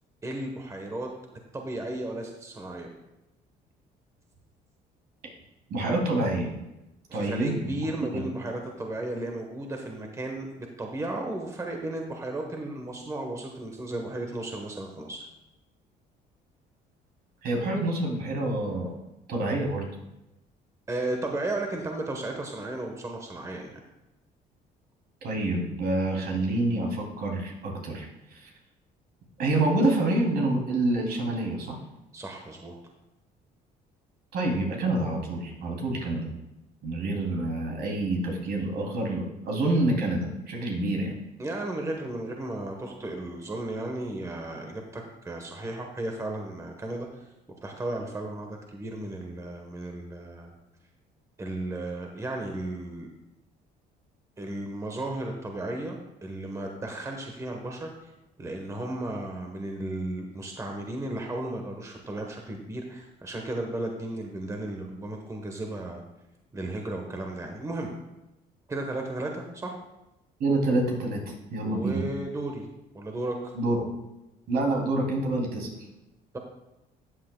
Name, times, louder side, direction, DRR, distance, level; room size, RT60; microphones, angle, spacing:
voice 1, 0.2-1.1 1.5-2.9 7.1-15.3 20.9-23.8 32.1-32.7 41.4-47.1 47.6-50.5 51.4-53.1 54.4-58.1 58.4-66.0 66.5-67.9 68.7-69.8 71.6-72.7 72.9-73.5, right 1 dB, 20° right, 2 dB, 1.1 m, -34 dB
voice 2, 5.7-6.5 7.1-7.7 8.1-8.2 17.4-19.0 19.3-19.8 25.2-28.5 29.4-31.8 34.3-36.3 36.8-41.2 70.4-71.2 71.5-72.0 73.5-73.9 74.5-75.7, right 2 dB, 70° right, -1 dB, 2.7 m, -27 dB
13.0 x 8.5 x 2.2 m, 0.96 s
cardioid pair, 110°, 17 cm